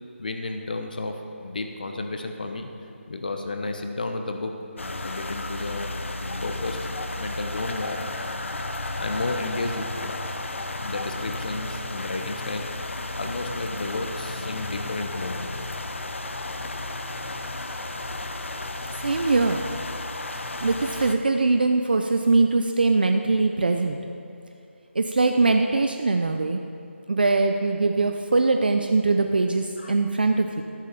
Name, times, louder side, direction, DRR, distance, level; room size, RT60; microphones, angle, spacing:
voice 1, 0.2-2.7 3.1-4.5 5.0-5.9 6.4-6.8 7.2-8.1 9.0-10.2 10.8-12.7 13.2-15.6 29.8-29.9, left 2 dB, 40° left, 5 dB, 1.1 m, -32 dB
sound 1, 4.8-21.1, left 2 dB, 70° left, 0.9 m, -33 dB
voice 2, 19.0-19.6 20.6-24.0 24.9-26.6 27.1-30.6, right 3 dB, 45° right, 5 dB, 0.5 m, -22 dB
13.5 x 6.6 x 6.8 m, 2.6 s
figure-of-eight pair, 175°, 7 cm